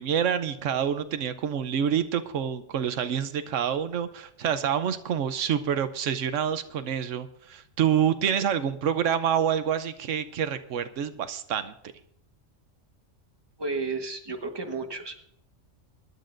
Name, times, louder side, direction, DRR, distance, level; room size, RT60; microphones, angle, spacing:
voice 1, 0.0-11.7, right 8 dB, 85° right, 11 dB, 1.1 m, -27 dB
voice 2, 13.6-15.2, right 3 dB, 20° right, 4 dB, 1.3 m, -32 dB
23.0 x 11.0 x 2.6 m, 0.69 s
omnidirectional pair, 1.3 m